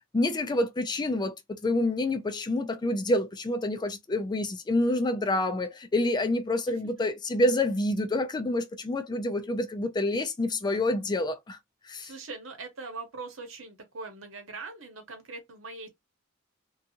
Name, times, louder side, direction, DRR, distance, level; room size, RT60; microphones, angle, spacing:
voice 1, 0.1-11.6 11.9-12.1, left 1 dB, 20° left, 0.4 m, -27 dB
voice 2, 12.0-15.9, right 3 dB, 80° right, 1.0 m, -41 dB
2.6 x 2.3 x 2.7 m
head